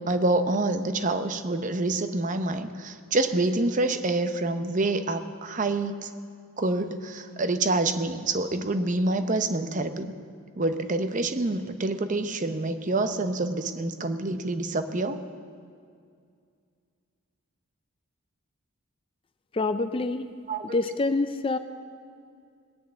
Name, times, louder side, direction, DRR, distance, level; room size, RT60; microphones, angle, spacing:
voice 1, 0.0-6.1 6.6-10.1 10.6-15.2 20.5-20.7, right 2 dB, 35° right, 9 dB, 0.7 m, -27 dB
voice 2, 19.5-20.3 20.7-21.6, left 3 dB, 25° left, 10 dB, 0.4 m, -26 dB
19.5 x 6.9 x 8.8 m, 2.2 s
head